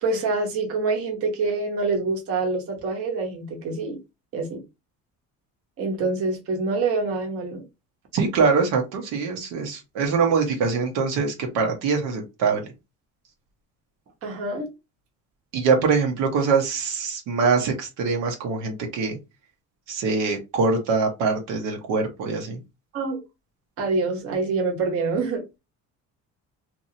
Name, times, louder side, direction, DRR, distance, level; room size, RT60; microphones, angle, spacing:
voice 1, 0.0-4.0 4.3-4.6 5.8-7.6 14.2-14.7 22.9-23.2 23.8-25.4, right 3 dB, 45° right, 1.0 m, -26 dB
voice 2, 8.1-12.6 15.5-19.2 19.9-22.6, right 5 dB, 85° right, 1.1 m, -23 dB
2.8 x 2.7 x 2.7 m
cardioid pair, 145°, 31 cm